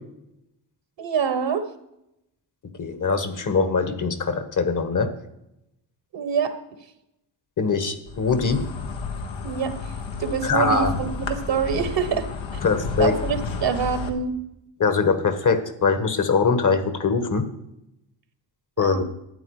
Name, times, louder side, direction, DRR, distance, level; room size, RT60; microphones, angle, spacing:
voice 1, 1.0-1.7 6.1-6.5 9.4-9.9 10.2-12.3 12.5-12.6 13.0-14.3 18.8-19.0, right 6 dB, 70° right, 10 dB, 1.3 m, -25 dB
voice 2, 2.8-5.1 7.6-8.6 10.4-10.9 12.6-13.1 14.8-17.4 18.8-19.0, left 4 dB, 40° left, 10 dB, 1.4 m, -22 dB
Insect, 8.1-14.1, left 5 dB, 80° left, 1.4 m, -32 dB
12.5 x 8.9 x 4.8 m, 0.84 s
cardioid pair, 75°, 46 cm